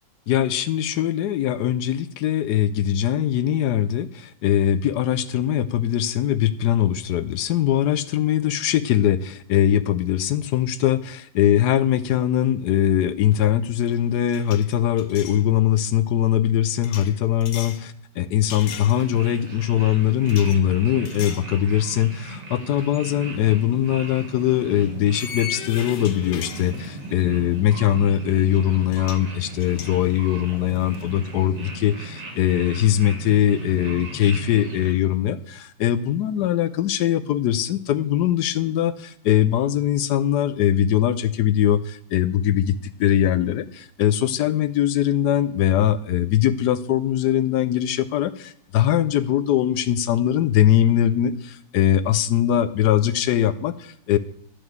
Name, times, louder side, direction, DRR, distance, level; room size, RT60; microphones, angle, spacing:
voice 1, 0.3-54.2, left 11 dB, 75° left, 13 dB, 1.0 m, -21 dB
sound 1, 13.3-13.6 13.8-15.4 16.8-17.8 18.5-19.4 20.3-20.6 21.1-21.5 22.0-22.1 23.7-23.8 25.1-27.2 28.6-28.7 28.9-29.3 29.6-31.1, left 9 dB, 90° left, 1.6 m, -38 dB
sound 2, 19.0-34.9, right 2 dB, 60° right, 2.6 m, -37 dB
11.0 x 4.8 x 7.8 m, 0.70 s
omnidirectional pair, 2.1 m